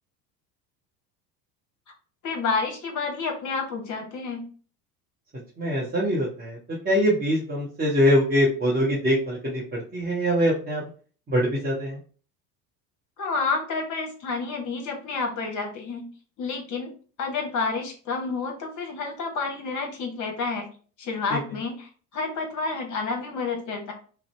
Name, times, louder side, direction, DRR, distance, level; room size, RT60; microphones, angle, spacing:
voice 1, 2.2-4.5 13.2-16.1 16.4-16.9 17.2-20.7 21.0-23.9, left 4 dB, 35° left, 3 dB, 0.9 m, -29 dB
voice 2, 5.6-10.8 11.3-12.0 21.3-21.4, equal, 20° right, -5 dB, 0.7 m, -23 dB
2.5 x 2.0 x 3.1 m, 0.40 s
hypercardioid pair, 70°, 49 cm